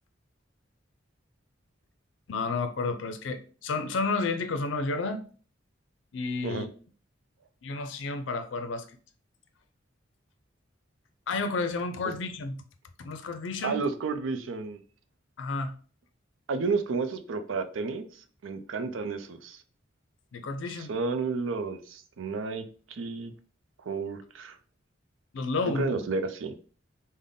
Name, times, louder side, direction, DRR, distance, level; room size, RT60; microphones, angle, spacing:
voice 1, 2.3-5.2 6.1-6.7 7.6-9.0 11.3-12.6 13.0-13.8 15.4-15.7 20.3-20.9 25.3-26.0, left 3 dB, 70° left, 0.5 m, -31 dB
voice 2, 13.6-14.8 16.5-19.6 20.7-23.3 23.9-24.6 25.7-26.6, right 4 dB, 85° right, 0.5 m, -32 dB
3.8 x 2.1 x 3.5 m
head